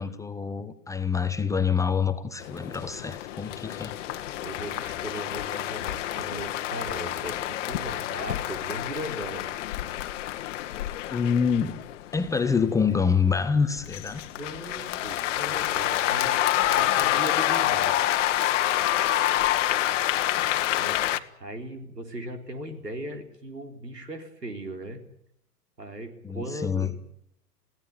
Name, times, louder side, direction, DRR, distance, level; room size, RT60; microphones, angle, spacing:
voice 1, 0.0-4.0 11.1-11.8 12.1-14.3 26.2-26.9, left 6 dB, 5° left, 8 dB, 0.9 m, -26 dB
sound 1, 2.4-21.2, left 13 dB, 50° left, 1.3 m, -28 dB
voice 2, 4.1-9.5 14.4-16.4 16.8-17.9 20.8-25.0 25.8-27.0, right 1 dB, 85° right, 6 dB, 4.0 m, -38 dB
22.0 x 16.5 x 9.6 m, 0.72 s
figure-of-eight pair, 110°, 47 cm